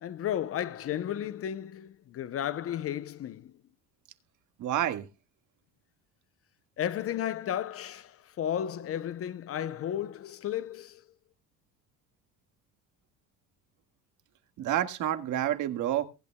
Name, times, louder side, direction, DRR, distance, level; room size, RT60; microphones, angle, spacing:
voice 1, 0.0-3.5 6.8-11.0, left 10 dB, 40° left, 0.7 m, -33 dB
voice 2, 4.6-5.1 14.6-16.0, right 11 dB, 60° right, 1.7 m, -28 dB
23.5 x 8.4 x 2.2 m
cardioid pair, 105°, 34 cm